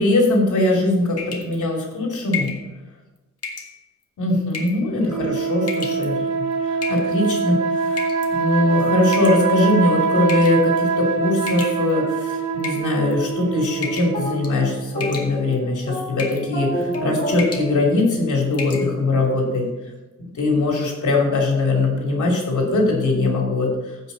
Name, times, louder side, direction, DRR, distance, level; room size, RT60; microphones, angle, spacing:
voice 1, 0.0-2.5 4.2-6.5 6.9-8.0 8.3-19.7 20.3-23.7, left 2 dB, 80° left, -1 dB, 2.9 m, -21 dB
sound 1, 1.2-1.6 2.3-2.6 3.4-3.7 4.5-4.9 5.6-6.1 6.8-7.3 8.0-8.3 9.1-9.7 10.3-10.6 11.5-12.1 12.6-13.3 13.8-14.2 14.4-14.7 15.0-15.6 16.2-16.5 16.8-17.0 17.3-17.7 18.0-18.1 18.5-18.9, left 5 dB, 55° left, 1.7 m, -32 dB
sound 2, 5.1-14.8, right 5 dB, 70° right, 1.2 m, -24 dB
sound 3, 13.8-18.4, right 1 dB, 25° left, 3.6 m, -30 dB
15.5 x 5.6 x 4.0 m, 1.1 s
wide cardioid pair, 150°, 30 cm